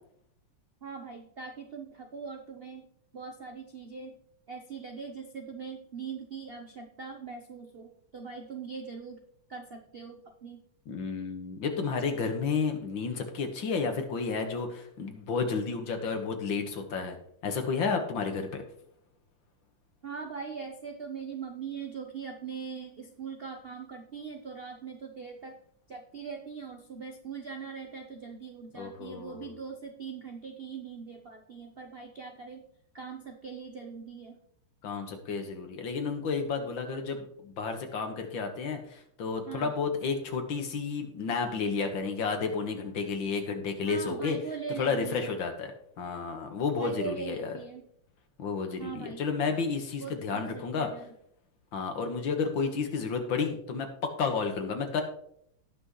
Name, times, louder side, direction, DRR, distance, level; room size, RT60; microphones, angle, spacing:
voice 1, 0.8-2.9 3.1-4.2 4.5-9.2 9.5-10.6 20.0-25.6 25.9-32.7 32.9-34.4 39.5-39.7 43.8-45.3 46.8-47.9 48.8-49.2 50.0-51.1, right 6 dB, 60° right, 4 dB, 0.6 m, -41 dB
voice 2, 10.9-17.2 17.4-18.6 28.7-29.5 34.8-44.4 44.8-45.7 46.0-47.5 48.4-50.9 51.7-55.0, left 5 dB, 65° left, 5 dB, 2.1 m, -31 dB
18.0 x 6.2 x 3.1 m, 0.69 s
omnidirectional pair, 2.4 m